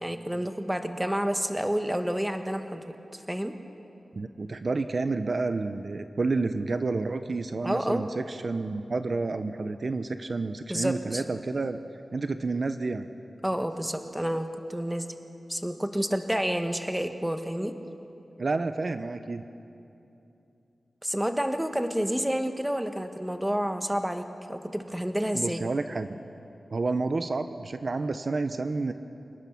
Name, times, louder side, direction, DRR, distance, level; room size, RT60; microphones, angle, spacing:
voice 1, 0.0-3.6 7.6-8.1 10.7-11.2 13.4-15.1 15.5-17.8 21.0-25.6, equal, 5° right, 7 dB, 1.3 m, -29 dB
voice 2, 4.1-11.8 12.1-13.1 18.4-19.4 25.3-26.2 26.7-28.9, right 3 dB, 55° right, 9 dB, 0.7 m, -30 dB
28.0 x 18.5 x 5.8 m, 2.8 s
wide cardioid pair, 100°, 0 cm